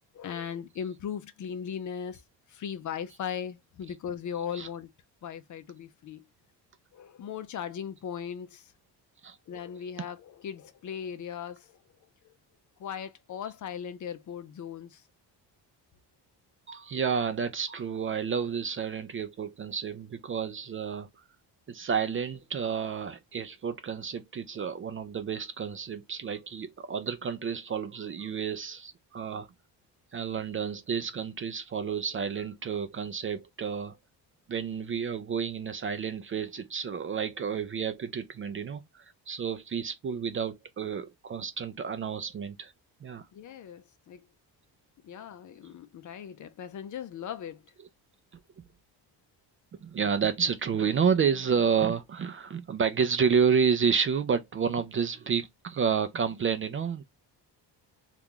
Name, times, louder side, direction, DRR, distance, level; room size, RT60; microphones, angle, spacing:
voice 1, 0.1-2.2 2.5-4.9 5.2-6.2 6.9-8.7 9.5-11.8 12.8-15.0 43.3-44.2 45.0-47.6, left 8 dB, 45° left, 0.5 m, -38 dB
voice 2, 16.7-21.1 21.7-29.5 30.1-34.0 34.5-42.7 43.0-43.3 49.8-57.0, right 6 dB, 30° right, 0.4 m, -30 dB
2.9 x 2.4 x 3.6 m
cardioid pair, 125°, 41 cm